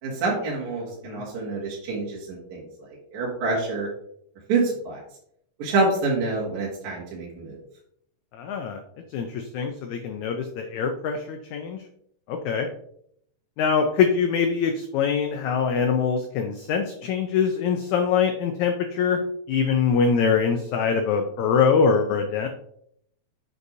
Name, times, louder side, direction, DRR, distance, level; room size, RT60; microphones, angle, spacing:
voice 1, 0.0-2.7 3.1-3.9 4.5-5.0 5.6-7.6, right 3 dB, 60° right, -5 dB, 3.0 m, -26 dB
voice 2, 8.3-8.8 9.1-11.8 12.3-12.7 13.6-19.2 19.5-22.5, left 6 dB, 85° left, 5 dB, 1.6 m, -23 dB
8.0 x 6.2 x 2.7 m, 0.70 s
omnidirectional pair, 4.1 m